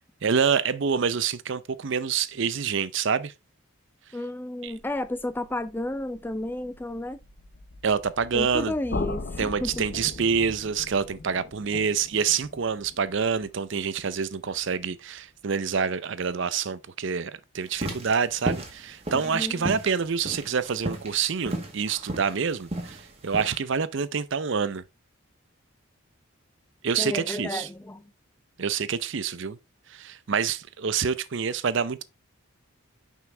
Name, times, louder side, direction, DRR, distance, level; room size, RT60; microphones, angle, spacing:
voice 1, 0.2-3.3 4.6-4.7 7.8-8.7 9.4-24.8 26.8-27.7 28.6-29.6 29.9-32.0, right 6 dB, 55° right, 0.5 m, -27 dB
voice 2, 4.1-7.2 8.3-9.7 19.3-19.7 27.0-28.0, left 1 dB, 10° left, 0.3 m, -32 dB
sound 1, 4.7-10.2, left 1 dB, 80° left, 1.8 m, -49 dB
sound 2, 8.9-14.8, left 3 dB, 50° left, 0.6 m, -38 dB
sound 3, 17.7-23.6, right 1 dB, 30° right, 1.6 m, -33 dB
6.0 x 5.6 x 3.3 m
head